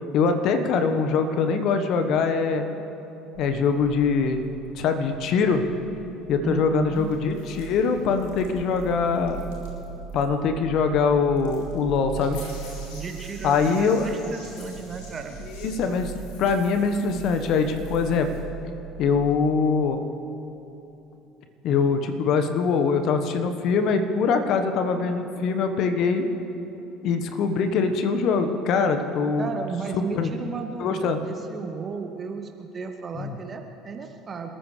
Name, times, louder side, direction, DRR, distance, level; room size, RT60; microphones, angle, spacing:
voice 1, 0.1-2.7 3.4-5.6 6.3-9.4 10.1-12.4 13.4-14.1 15.4-18.3 19.0-20.0 21.6-26.2 27.0-29.5 29.9-30.3 30.8-31.2 33.2-33.3, left 5 dB, 55° left, 7 dB, 1.3 m, -23 dB
sound 1, 3.3-19.4, right 6 dB, 60° right, 4.7 m, -40 dB
voice 2, 6.4-7.1 12.9-15.4 29.4-34.5, right 5 dB, 35° right, 5 dB, 1.2 m, -33 dB
sound 2, 6.9-9.8 10.1-10.2 11.4-18.4, left 3 dB, 70° left, 3.4 m, -49 dB
28.5 x 13.5 x 3.3 m, 3.0 s
figure-of-eight pair, 60°, 0 cm